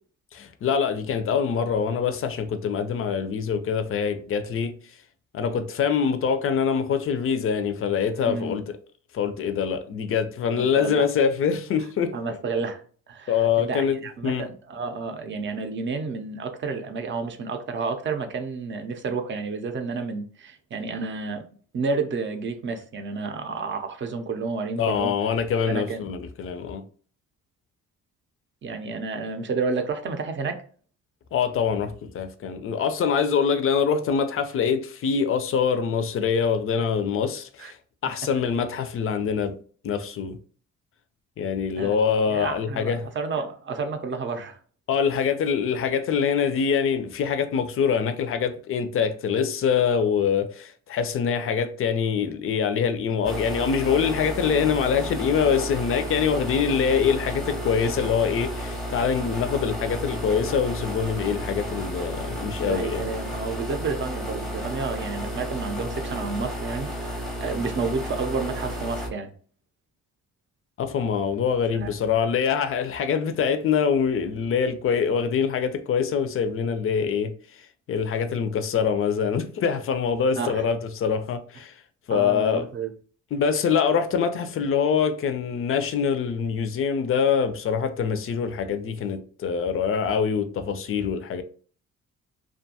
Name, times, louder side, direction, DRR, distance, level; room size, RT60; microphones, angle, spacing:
voice 1, 0.3-4.7 5.3-8.8 9.1-12.1 13.3-14.0 14.2-14.5 24.8-26.8 31.3-37.8 38.0-39.5 39.8-40.4 41.4-43.1 44.9-63.1 70.8-81.8 82.1-82.7 83.3-91.4, left 6 dB, 45° left, 0.4 m, -24 dB
voice 2, 8.3-8.6 10.5-11.0 12.1-21.4 21.7-25.1 25.7-26.1 28.6-30.6 37.6-37.7 38.1-38.2 41.8-42.0 42.3-44.6 62.6-69.3 71.8-71.9 80.4-80.6 82.1-82.9, right 4 dB, 40° right, 0.5 m, -30 dB
sound 1, 53.2-69.1, equal, ahead, 0.7 m, -32 dB
2.5 x 2.3 x 2.7 m
cardioid pair, 90°, 30 cm